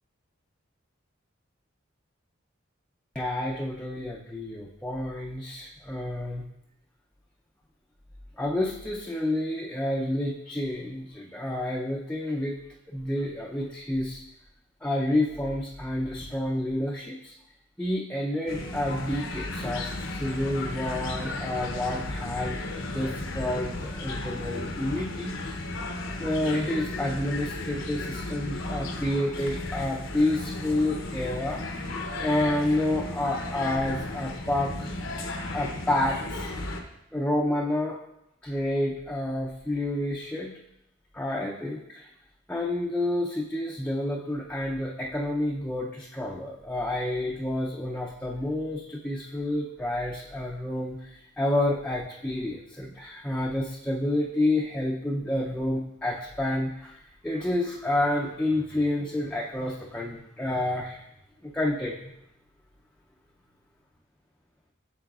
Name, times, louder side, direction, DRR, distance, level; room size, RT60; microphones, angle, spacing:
voice 1, 3.1-6.4 8.4-12.6 12.9-14.2 14.8-17.3 17.8-25.6 26.2-31.6 32.2-35.0 35.5-36.5 37.1-38.0 38.4-40.5 41.1-42.1 42.5-61.1 61.4-62.1, left 1 dB, 5° left, -3 dB, 0.4 m, -29 dB
sound 1, 18.5-36.8, left 2 dB, 70° left, 0.7 m, -34 dB
8.7 x 6.3 x 2.4 m, 0.85 s
head